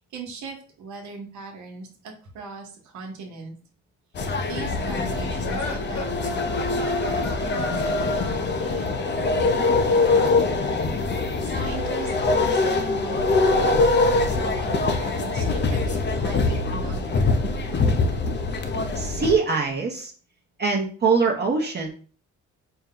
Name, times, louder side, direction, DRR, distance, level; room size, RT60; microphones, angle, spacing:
voice 1, 0.1-3.5 4.5-11.0 11.4-17.3, right 4 dB, 70° right, 1 dB, 1.1 m, -39 dB
sound 1, 4.1-19.4, left 3 dB, 35° left, 0.5 m, -23 dB
sound 2, 5.4-9.0, left 2 dB, 60° left, 1.2 m, -35 dB
voice 2, 19.0-20.1 20.6-21.9, right 4 dB, 35° right, -1 dB, 0.9 m, -23 dB
4.4 x 2.2 x 3.7 m, 0.41 s
cardioid pair, 90°, 30 cm